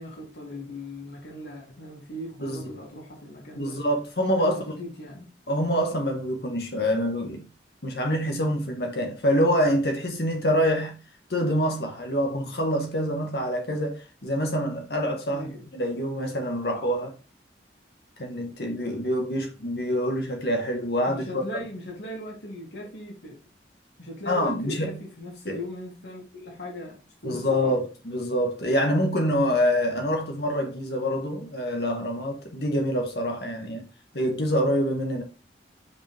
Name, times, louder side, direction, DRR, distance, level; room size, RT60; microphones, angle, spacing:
voice 1, 0.0-3.8 4.4-5.3 15.3-15.7 21.0-23.4 24.0-27.8, left 1 dB, 85° left, 2.8 m, -39 dB
voice 2, 2.4-2.7 3.5-4.6 5.5-7.5 7.8-11.0 11.3-17.1 18.2-21.4 24.3-25.0 25.5-25.6 27.2-33.9 34.1-35.2, equal, 65° left, 1.6 m, -26 dB
5.3 x 5.2 x 3.5 m
head